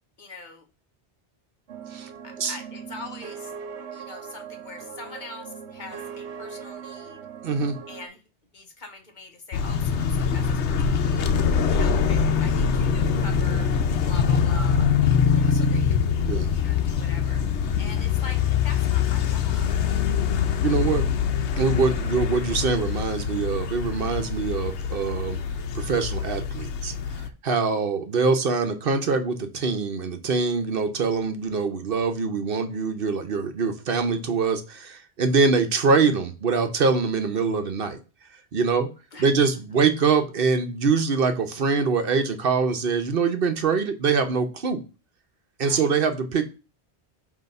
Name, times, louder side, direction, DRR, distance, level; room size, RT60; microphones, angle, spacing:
voice 1, 0.2-0.7 2.2-3.5 3.9-7.2 7.9-8.2 8.5-11.3 11.7-13.7 14.0-14.9 15.3-16.0 16.5-17.4 17.8-19.7 39.1-39.3 45.6-45.9, left 3 dB, 45° left, 5 dB, 1.0 m, -42 dB
sound 1, 1.7-8.1, right 7 dB, 85° right, 1.1 m, -40 dB
voice 2, 7.4-7.8 16.2-16.5 20.6-21.0 21.6-25.4 25.7-26.9 27.4-38.0 38.5-38.9 39.2-44.8 45.6-46.5, right 4 dB, 60° right, 7 dB, 0.9 m, -24 dB
sound 2, 9.5-27.3, left 6 dB, 90° left, 1.0 m, -24 dB
7.8 x 2.8 x 5.3 m, 0.32 s
omnidirectional pair, 1.1 m